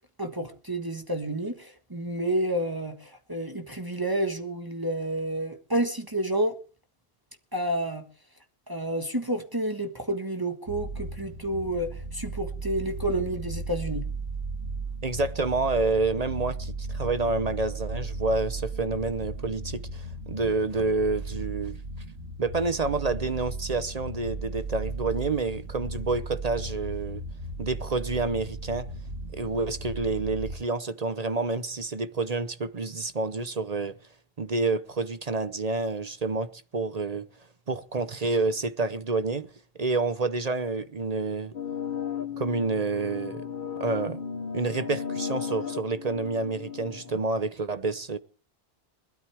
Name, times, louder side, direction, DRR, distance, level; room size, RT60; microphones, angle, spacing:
voice 1, 0.2-6.6 7.5-8.0 8.7-14.0, right 1 dB, 20° right, 1.6 m, -30 dB
sound 1, 10.7-30.6, right 2 dB, 75° right, 1.9 m, -36 dB
voice 2, 15.0-21.8 22.4-27.2 27.6-28.9 29.3-34.0 34.4-37.3 37.7-39.5 39.8-41.5 42.4-43.4 43.8-44.2 44.5-48.2, right 3 dB, 40° right, 0.9 m, -28 dB
sound 2, 41.5-47.4, left 7 dB, 55° left, 1.0 m, -35 dB
21.5 x 12.5 x 3.5 m
omnidirectional pair, 1.0 m